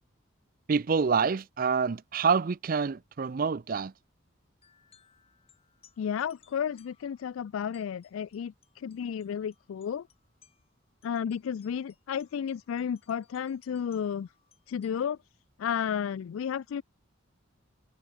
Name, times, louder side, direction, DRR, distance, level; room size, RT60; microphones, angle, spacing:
voice 1, 0.7-3.9, right 5 dB, 45° right, 0.4 m, -27 dB
sound 1, 4.6-15.0, left 8 dB, 30° left, 3.9 m, -65 dB
voice 2, 6.0-10.1 11.0-14.3 14.7-15.2 15.6-16.8, left 8 dB, 85° left, 0.3 m, -32 dB
head